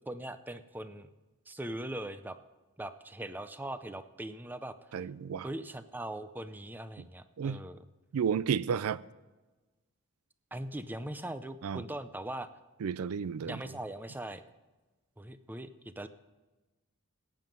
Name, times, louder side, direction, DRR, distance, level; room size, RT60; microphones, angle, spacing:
voice 1, 0.1-1.1 1.5-2.4 2.8-4.7 5.4-7.8 10.5-12.5 13.5-14.4 15.2-16.1, right 1 dB, 10° right, 0.5 m, -40 dB
voice 2, 4.9-5.5 7.0-7.1 7.4-7.6 8.1-9.0 11.6-11.8 12.8-13.6, right 7 dB, 85° right, 0.4 m, -32 dB
15.0 x 9.4 x 5.3 m
head